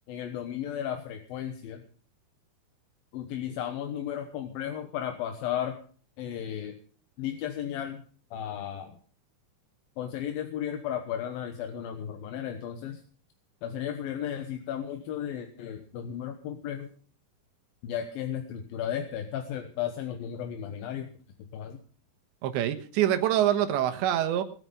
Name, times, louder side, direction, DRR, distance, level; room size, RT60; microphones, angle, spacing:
voice 1, 0.1-1.8 3.1-5.8 6.2-6.8 7.2-8.0 8.3-9.0 10.0-13.0 13.6-16.9 17.8-21.1 21.5-21.8, left 10 dB, 65° left, 6 dB, 2.6 m, -34 dB
voice 2, 22.4-24.4, right 11 dB, 85° right, 8 dB, 3.5 m, -25 dB
20.0 x 9.3 x 5.6 m, 0.42 s
omnidirectional pair, 5.1 m